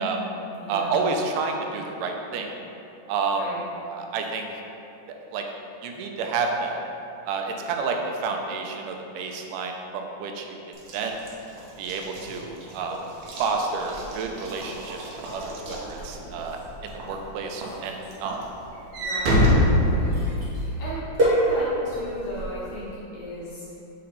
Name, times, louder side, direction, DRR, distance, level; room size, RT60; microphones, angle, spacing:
voice 1, 0.0-1.1 3.3-3.6 19.0-19.5 19.8-20.2 20.6-23.7, equal, 65° left, -9 dB, 2.8 m, -36 dB
voice 2, 0.7-2.5 3.1-3.5 3.9-4.5 5.3-5.4 5.8-6.8 7.3-10.6 10.9-11.2 11.8-13.0 13.4-15.0 15.3-16.6 16.8-18.5, right 4 dB, 90° right, 3 dB, 2.2 m, -29 dB
Walk footsteps / Slam, 10.8-16.5 17.0-17.3 17.6-20.6, left 1 dB, 70° right, 2.1 m, -26 dB
sound 1, 13.1-22.9, right 1 dB, 40° right, 0.8 m, -32 dB
7.4 x 3.9 x 4.2 m, 2.9 s
omnidirectional pair, 3.6 m